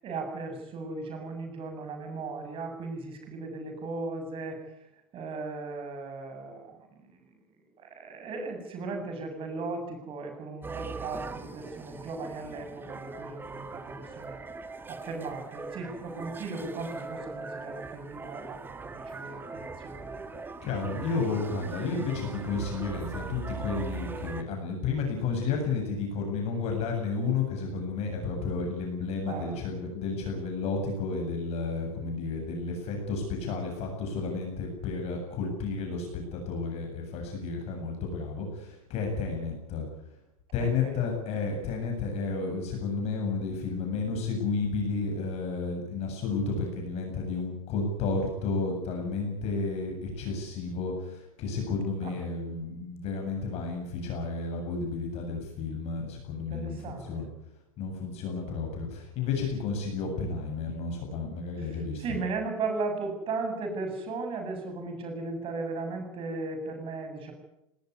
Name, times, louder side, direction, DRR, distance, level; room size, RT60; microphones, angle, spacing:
voice 1, 0.0-4.6 5.1-7.3 7.8-14.4 14.9-20.2 29.3-29.6 40.6-41.0 52.0-52.2 56.4-57.3 61.6-67.3, right 3 dB, 30° right, 5 dB, 7.6 m, -37 dB
sound 1, 10.6-24.4, right 4 dB, 10° right, 1.6 m, -40 dB
voice 2, 20.6-39.9 40.5-57.3 57.8-62.2, left 4 dB, 35° left, 2 dB, 7.7 m, -32 dB
19.5 x 19.0 x 9.8 m, 0.85 s
supercardioid pair, 140°, 18 cm